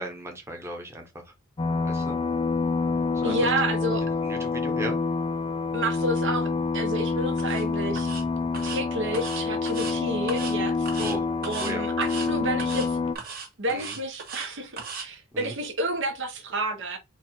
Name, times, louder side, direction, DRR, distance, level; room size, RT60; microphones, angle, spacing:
voice 1, 0.0-1.3 1.8-2.2 3.1-3.3 4.2-5.0 9.8-10.0 11.0-11.3 11.6-11.8 13.7-14.0 15.3-15.5, right 1 dB, 15° right, 1.0 m, -36 dB
sound 1, 1.6-13.1, left 4 dB, 25° left, 0.4 m, -27 dB
voice 2, 3.2-4.0 5.7-8.1 8.6-10.9 11.4-13.0 13.6-17.0, right 1 dB, 60° right, 1.0 m, -30 dB
sound 2, 7.4-7.6 8.0-8.2 8.5-8.8 9.1-9.9 10.3-10.6 10.9-11.2 11.4-11.7 12.0-12.3 12.6-12.9 13.2-14.5 14.8-15.1, right 5 dB, 45° right, 1.4 m, -37 dB
4.5 x 2.4 x 4.4 m
head